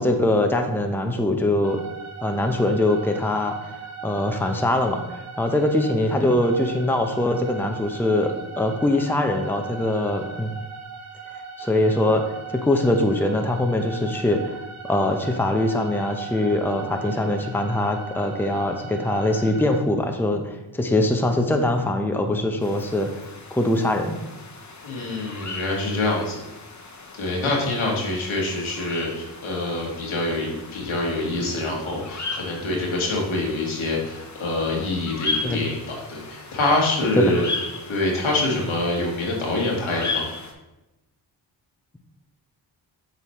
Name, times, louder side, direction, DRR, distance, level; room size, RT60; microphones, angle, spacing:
voice 1, 0.0-1.8 2.2-3.5 4.0-10.5 11.6-12.2 12.5-14.5 14.8-23.1 23.5-24.2 35.4-35.6 37.2-37.3, left 1 dB, 5° left, 4 dB, 0.8 m, -22 dB
sound 1, 1.6-19.8, right 6 dB, 35° right, 1.1 m, -38 dB
sound 2, 22.6-40.5, left 3 dB, 35° left, 1.1 m, -36 dB
voice 2, 24.8-26.4 27.2-37.4 37.9-40.3, left 2 dB, 80° left, -2 dB, 1.8 m, -25 dB
7.6 x 4.1 x 3.1 m, 0.98 s
supercardioid pair, 45°, 48 cm